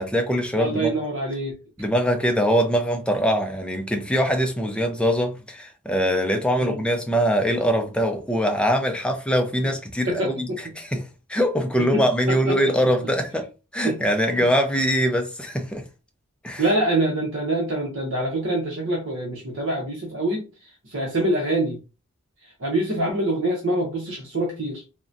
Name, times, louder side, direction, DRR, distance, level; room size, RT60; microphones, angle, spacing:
voice 1, 0.0-0.9 1.8-10.5 10.8-13.4 13.7-15.8 16.4-16.6, equal, 5° left, 0.4 m, -23 dB
voice 2, 0.6-1.5 6.6-6.8 10.1-10.6 11.9-12.6 13.8-14.0 16.6-20.5 20.9-21.8 22.6-24.8, right 1 dB, 60° right, 0.8 m, -25 dB
3.7 x 2.1 x 2.5 m
head